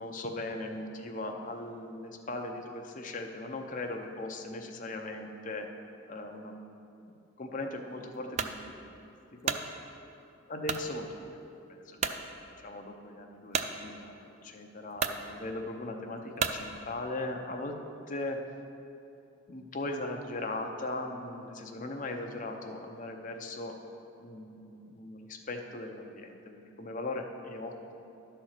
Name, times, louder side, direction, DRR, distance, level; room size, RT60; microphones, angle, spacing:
voice 1, 0.0-5.7 6.1-6.6 7.4-9.6 10.5-12.1 12.5-17.8 18.1-18.4 19.5-23.8 24.2-27.9, left 2 dB, 40° left, 3 dB, 0.7 m, -39 dB
sound 1, 8.4-8.6 9.2-9.7 10.6-10.9 11.4-11.5 12.0-12.2 13.5-13.7 14.5-14.6 15.0-15.2 16.4-16.6, right 6 dB, 35° right, 0.3 m, -31 dB
11.0 x 4.4 x 6.5 m, 2.7 s
head